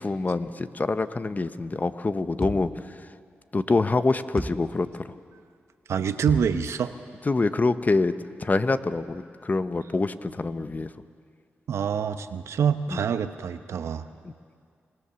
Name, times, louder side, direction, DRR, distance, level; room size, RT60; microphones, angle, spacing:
voice 1, 0.0-2.7 3.5-5.1 7.3-8.1 8.4-10.9 12.9-13.0 14.2-14.3, left 3 dB, 35° left, 12 dB, 0.9 m, -25 dB
sound 1, 2.4-2.8 4.4-4.8 6.3-6.6, right 1 dB, ahead, 1.2 m, -33 dB
voice 2, 5.9-6.9 11.7-14.1, right 7 dB, 80° right, 10 dB, 0.8 m, -26 dB
25.5 x 17.0 x 7.0 m, 2.2 s
cardioid pair, 55°, 5 cm